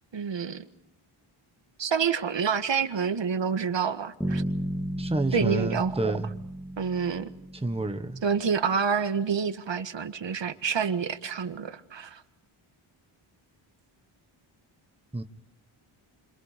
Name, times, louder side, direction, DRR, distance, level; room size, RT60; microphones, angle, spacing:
voice 1, 0.1-0.6 1.8-4.4 5.3-5.9 6.8-7.3 8.2-12.2, right 6 dB, 60° right, 1.6 m, -28 dB
Bass guitar, 4.2-8.1, right 1 dB, 5° left, 3.3 m, -33 dB
voice 2, 5.0-6.3 7.6-8.2 15.1-15.2, right 2 dB, 10° right, 1.4 m, -29 dB
30.0 x 27.0 x 5.2 m
wide cardioid pair, 125°, 49 cm